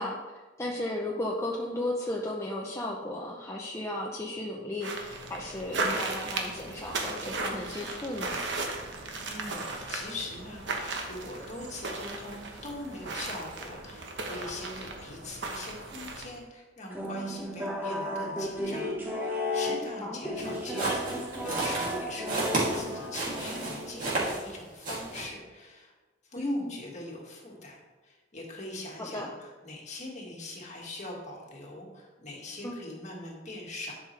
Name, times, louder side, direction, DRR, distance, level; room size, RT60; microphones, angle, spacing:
voice 1, 0.0-8.4 20.0-20.2 26.4-26.7 29.0-29.3 32.6-32.7, left 1 dB, 15° left, -3 dB, 0.7 m, -34 dB
sound 1, 4.8-16.4, right 3 dB, 65° right, 1.1 m, -36 dB
voice 2, 9.3-21.2 21.4-25.9 26.2-34.0, left 2 dB, 40° left, -2 dB, 1.9 m, -42 dB
sound 2, 16.9-24.3, left 1 dB, 10° right, 1.3 m, -34 dB
sound 3, 20.4-24.6 24.8-25.2, right 2 dB, 45° right, 2.7 m, -32 dB
11.0 x 5.6 x 3.3 m, 1.3 s
head